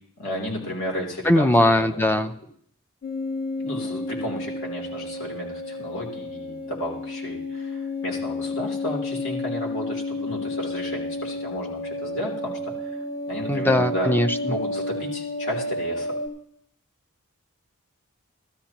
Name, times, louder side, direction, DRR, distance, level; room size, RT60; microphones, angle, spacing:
voice 1, 0.2-2.1 3.6-14.1 14.5-16.2, equal, 60° left, -1 dB, 3.3 m, -33 dB
voice 2, 1.3-2.3 13.5-14.5, left 1 dB, 10° left, 9 dB, 0.5 m, -20 dB
sound 1, 3.0-16.3, left 2 dB, 45° left, 2.4 m, -31 dB
16.0 x 13.0 x 2.9 m, 0.65 s
head